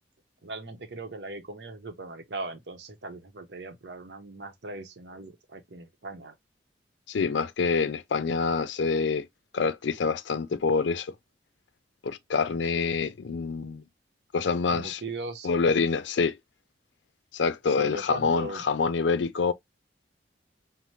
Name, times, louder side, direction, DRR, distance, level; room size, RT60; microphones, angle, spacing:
voice 1, 0.4-6.3 12.7-12.9 14.7-15.5 17.7-18.6, right 2 dB, 70° right, 0.8 m, -39 dB
voice 2, 7.1-9.3 9.5-11.1 12.0-13.8 14.3-15.0 15.4-16.4 17.3-19.5, left 5 dB, 85° left, 0.4 m, -26 dB
5.6 x 2.1 x 3.1 m
head